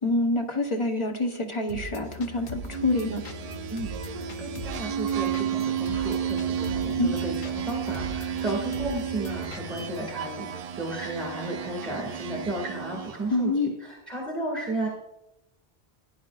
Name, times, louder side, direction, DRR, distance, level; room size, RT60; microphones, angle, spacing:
voice 1, 0.0-3.2 7.0-7.2 13.3-13.7, left 2 dB, 30° left, 3 dB, 1.1 m, -26 dB
sound 1, 1.7-10.0, left 2 dB, 50° left, 0.9 m, -40 dB
sound 2, 2.5-13.4, right 9 dB, 55° right, 0.4 m, -32 dB
voice 2, 3.7-13.5 13.8-14.9, right 1 dB, 10° right, -2 dB, 2.0 m, -34 dB
14.5 x 10.0 x 2.4 m, 0.90 s
omnidirectional pair, 1.1 m